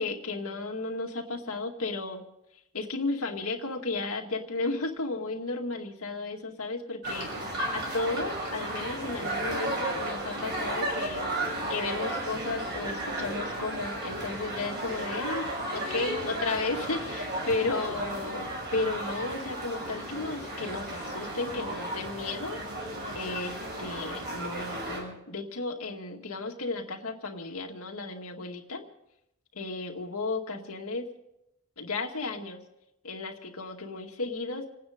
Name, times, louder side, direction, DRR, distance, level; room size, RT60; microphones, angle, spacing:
voice 1, 0.0-2.2 2.7-11.3 11.7-18.5 18.7-22.6 23.1-28.8 29.5-31.1 31.8-32.6 33.0-34.7, left 3 dB, 75° left, 2 dB, 2.2 m, -34 dB
sound 1, 7.0-25.0, right 1 dB, 50° right, 6.2 m, -34 dB
28.5 x 9.5 x 5.2 m, 0.85 s
head